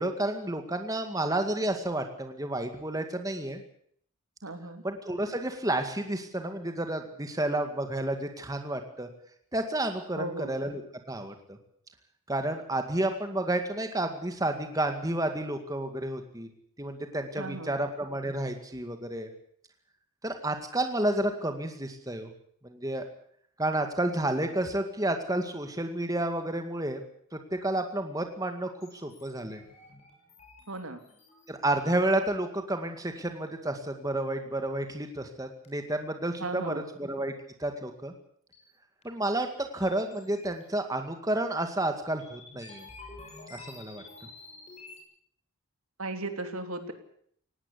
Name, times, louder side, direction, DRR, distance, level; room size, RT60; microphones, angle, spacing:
voice 1, 0.0-3.6 4.8-9.1 9.5-10.8 11.1-11.6 12.3-16.5 16.8-19.3 20.2-22.3 22.6-23.1 23.6-27.0 27.3-29.6 31.5-37.3 37.6-38.1 39.0-42.9 43.5-44.0, right 1 dB, 15° right, 6 dB, 2.1 m, -31 dB
voice 2, 4.4-4.8 10.2-10.6 17.4-17.8 30.7-31.0 36.4-36.9 46.0-46.9, right 2 dB, 75° right, 7 dB, 3.2 m, -36 dB
sound 1, 28.8-31.5 32.0-32.1 33.5-33.6 34.6-34.7 35.1-35.2 35.6-35.7 38.5-38.6 39.0-39.3 39.6-40.6 41.0-41.1 41.3-41.4 41.9-42.0 42.2-45.0, left 3 dB, 30° left, 6.9 m, -50 dB
19.0 x 18.0 x 8.4 m, 0.63 s
head